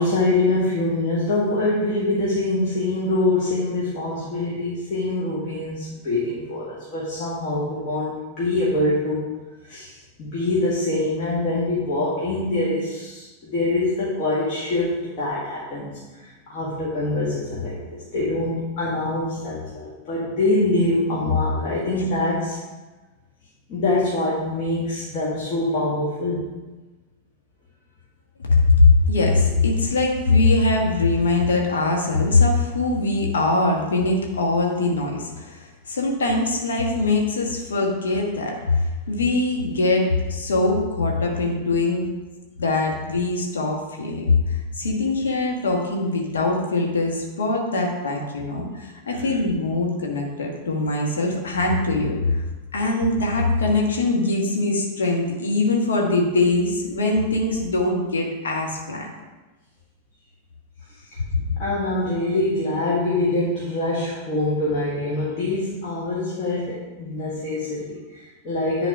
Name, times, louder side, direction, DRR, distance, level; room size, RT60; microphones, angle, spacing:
voice 1, 0.0-9.3 9.7-22.6 23.7-26.4 49.1-49.2 61.6-68.9, left 2 dB, 40° left, -7 dB, 1.9 m, -24 dB
voice 2, 28.5-42.1 42.6-52.4 52.7-59.1, left 3 dB, 65° left, 0 dB, 1.4 m, -22 dB
10.0 x 4.0 x 5.0 m, 1.2 s
figure-of-eight pair, 90°, 0 cm